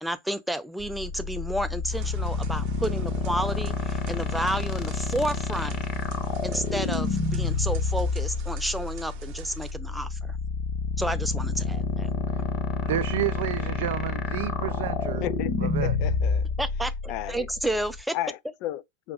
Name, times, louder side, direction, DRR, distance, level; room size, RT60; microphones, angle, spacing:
voice 1, 0.0-5.8 6.4-10.4 11.0-12.1 16.6-18.2, right 1 dB, 5° right, 0.6 m, -31 dB
sound 1, 0.8-18.0, left 4 dB, 35° left, 0.9 m, -28 dB
sound 2, 1.0-8.4, left 6 dB, 80° left, 1.2 m, -49 dB
sound 3, 1.9-9.7, right 11 dB, 50° right, 0.8 m, -45 dB
voice 2, 12.8-15.2 15.6-16.0, right 13 dB, 65° right, 0.3 m, -30 dB
voice 3, 15.2-16.5 17.1-17.5 18.1-19.1, left 13 dB, 50° left, 0.4 m, -34 dB
5.1 x 2.7 x 2.4 m
hypercardioid pair, 90°, 0 cm